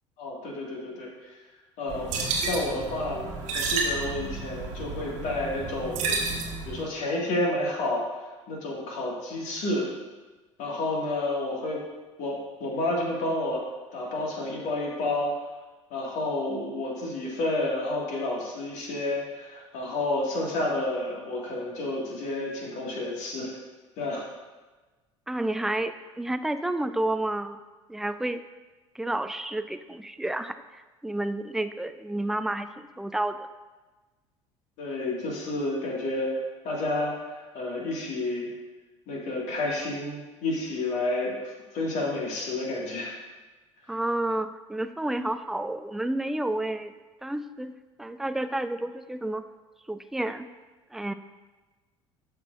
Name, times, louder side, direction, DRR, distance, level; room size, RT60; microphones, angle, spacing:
voice 1, 0.2-1.3 1.8-3.2 3.5-6.1 6.7-8.1 8.5-9.9 10.6-11.8 12.2-13.6 13.9-15.3 15.9-23.6 24.0-24.3 34.8-36.3 36.6-38.5 39.1-43.2, left 2 dB, 50° left, -2 dB, 1.9 m, -30 dB
sound 1, 1.9-6.9, right 3 dB, 50° right, 1.3 m, -31 dB
voice 2, 25.3-27.6 27.9-28.4 28.9-33.5 43.9-46.9 47.2-47.7 48.0-49.4 49.9-50.5 50.9-51.1, right 1 dB, ahead, 10 dB, 0.3 m, -30 dB
11.5 x 5.9 x 2.5 m, 1.2 s
figure-of-eight pair, 65°, 16 cm